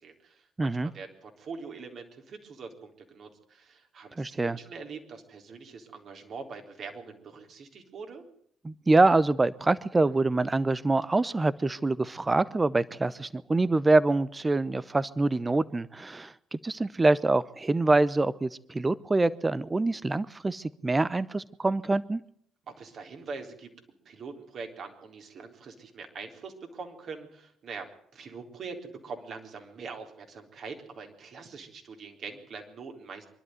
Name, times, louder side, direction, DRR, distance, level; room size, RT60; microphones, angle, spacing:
voice 1, 0.0-8.2 22.7-23.7 24.1-27.9 28.1-33.3, right 4 dB, 55° right, 4 dB, 3.9 m, -43 dB
voice 2, 0.6-0.9 4.2-4.6 8.6-22.2, right 2 dB, 25° right, 18 dB, 0.8 m, -25 dB
24.5 x 12.0 x 9.3 m, 0.68 s
hypercardioid pair, 50°, 0 cm